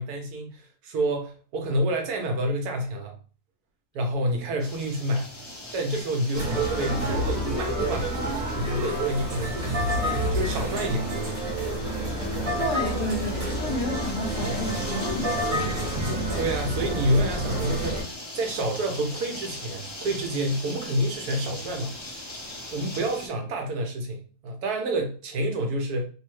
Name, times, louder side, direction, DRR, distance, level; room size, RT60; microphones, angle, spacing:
voice 1, 0.0-3.2 3.9-5.3 5.7-8.1 8.5-10.0 10.3-11.3 16.4-22.0 22.7-26.0, right 1 dB, 75° right, 1.2 m, -28 dB
sound 1, 4.6-23.3, left 1 dB, 40° left, 0.4 m, -41 dB
sound 2, 6.3-18.0, right 1 dB, 40° right, 1.4 m, -28 dB
voice 2, 12.6-15.8, left 1 dB, 70° left, 1.5 m, -32 dB
3.5 x 2.0 x 3.1 m
omnidirectional pair, 1.7 m